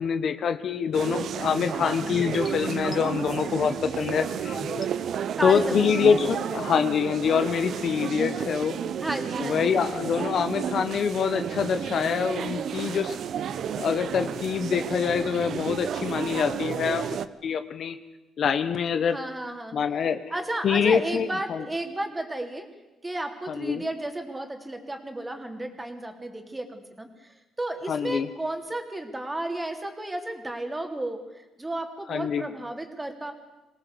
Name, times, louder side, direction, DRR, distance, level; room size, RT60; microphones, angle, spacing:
voice 1, 0.0-4.6 5.4-8.8 9.4-13.2 13.8-17.2 17.4-18.0 18.4-19.2 19.7-20.2 20.6-21.6 23.5-23.8 27.9-28.3 32.1-32.4, left 7 dB, 60° left, 10 dB, 1.3 m, -25 dB
sound 1, 0.9-17.3, right 8 dB, 65° right, 0.9 m, -32 dB
sound 2, 1.8-4.9 5.4-6.3, left 4 dB, 35° left, 1.9 m, -40 dB
voice 2, 5.4-5.9 9.0-9.8 19.1-19.8 20.3-22.7 23.0-27.3 27.6-33.3, right 1 dB, 15° right, 5 dB, 3.4 m, -33 dB
23.5 x 18.0 x 8.3 m, 1.1 s
cardioid pair, 90°, 0 cm